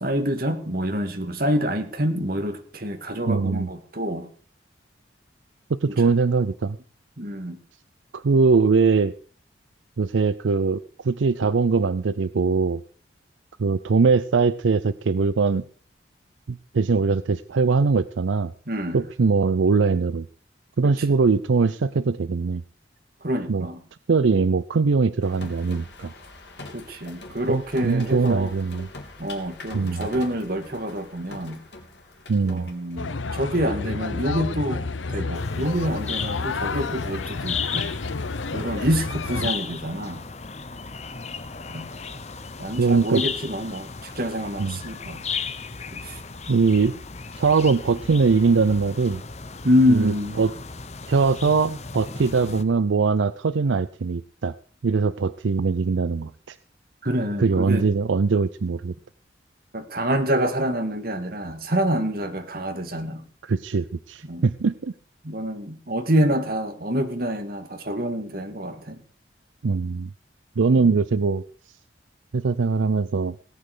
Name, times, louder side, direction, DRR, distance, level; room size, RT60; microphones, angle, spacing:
voice 1, 0.0-4.3 7.2-7.6 18.7-19.0 23.2-23.8 26.7-28.5 29.2-31.6 32.4-37.9 38.5-40.2 41.7-41.9 42.6-45.2 45.9-46.2 49.6-50.4 57.0-57.9 59.7-63.2 64.3-64.4 65.2-69.0, equal, 50° right, 7 dB, 2.0 m, -26 dB
voice 2, 3.3-3.7 5.7-6.8 8.1-9.1 10.0-12.8 13.6-15.6 16.5-18.5 18.9-20.3 20.8-22.6 23.5-23.7 24.1-26.1 27.5-28.9 29.7-30.1 32.3-32.7 38.8-38.9 42.8-43.2 44.6-44.8 46.5-46.9 47.4-49.2 49.9-50.5 51.1-54.5 54.8-56.6 57.4-58.9 63.4-64.9 69.6-70.1 70.6-71.4 72.3-73.4, right 4 dB, 85° right, 15 dB, 0.5 m, -21 dB
sound 1, 25.2-33.0, left 2 dB, 70° left, 3.3 m, -42 dB
sound 2, 33.0-39.5, left 3 dB, 90° left, 0.8 m, -30 dB
sound 3, 35.3-52.6, left 5 dB, 35° left, 0.9 m, -35 dB
18.0 x 9.0 x 5.0 m, 0.43 s
head